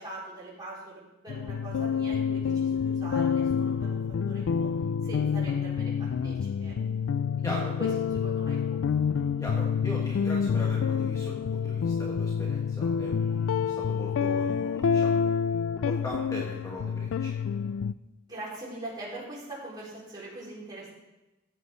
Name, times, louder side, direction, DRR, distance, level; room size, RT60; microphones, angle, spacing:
voice 1, 0.0-4.7 5.0-6.8 7.4-9.2 18.3-20.9, right 2 dB, 20° right, -8 dB, 4.6 m, -42 dB
sound 1, 1.3-17.9, left 6 dB, 90° left, 0.3 m, -28 dB
voice 2, 7.4-7.8 9.4-17.3, equal, 15° left, -3 dB, 1.3 m, -40 dB
15.0 x 8.0 x 3.9 m, 1.0 s
head